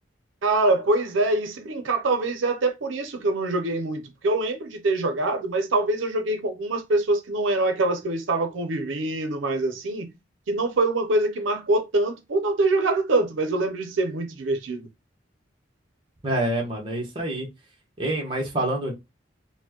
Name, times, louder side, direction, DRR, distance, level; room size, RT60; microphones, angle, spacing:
voice 1, 0.4-10.1 10.5-14.9, right 2 dB, 90° right, 0.6 m, -24 dB
voice 2, 16.2-17.5 18.0-18.9, right 1 dB, 25° right, 1.1 m, -26 dB
4.2 x 2.2 x 2.8 m
head